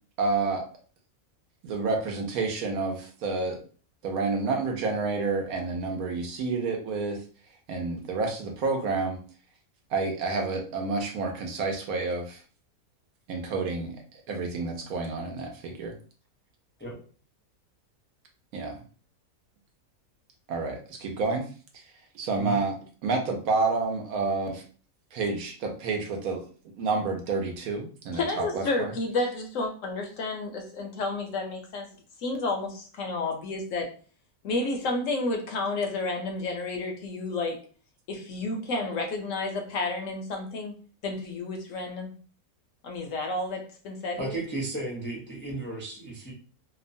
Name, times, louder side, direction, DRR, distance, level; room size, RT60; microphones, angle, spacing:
voice 1, 0.2-0.6 1.6-3.6 4.0-7.2 7.7-9.2 9.9-12.4 13.3-14.0 14.3-15.9 18.5-18.8 20.5-21.5 22.1-22.8 23.0-24.6 25.1-26.4 26.8-28.9, right 3 dB, 80° right, 3 dB, 1.1 m, -29 dB
voice 2, 28.1-31.9 32.2-33.9 34.4-37.6 38.1-40.8 41.0-42.1 42.8-44.4, left 2 dB, 70° left, 3 dB, 0.9 m, -31 dB
voice 3, 44.2-46.3, right 2 dB, 15° left, -3 dB, 0.4 m, -34 dB
2.8 x 2.1 x 2.6 m, 0.40 s
omnidirectional pair, 1.5 m